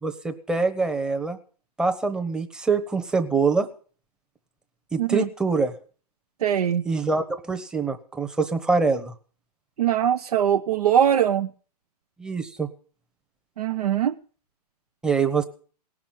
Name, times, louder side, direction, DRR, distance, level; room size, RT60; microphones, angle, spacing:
voice 1, 0.0-1.4 1.8-3.7 4.9-5.7 6.8-9.1 12.2-12.7 15.0-15.4, right 4 dB, 5° right, 1.0 m, -24 dB
voice 2, 5.0-5.3 6.4-6.8 9.8-11.5 13.6-14.1, right 9 dB, 65° right, 0.8 m, -21 dB
18.0 x 6.1 x 9.0 m
hypercardioid pair, 145°, 21 cm